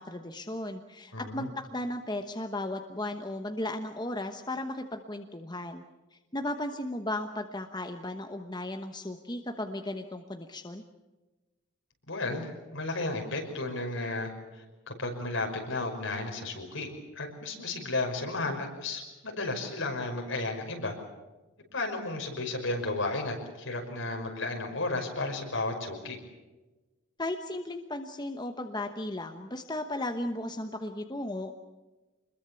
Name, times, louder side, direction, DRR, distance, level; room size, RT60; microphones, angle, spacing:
voice 1, 0.0-5.8 6.1-10.8 27.2-31.5, left 1 dB, 20° left, 5 dB, 1.1 m, -35 dB
voice 2, 1.1-1.5 12.1-16.9 17.2-20.9 21.7-26.2, left 2 dB, 70° left, 2 dB, 5.6 m, -33 dB
25.5 x 21.5 x 7.0 m, 1.1 s
head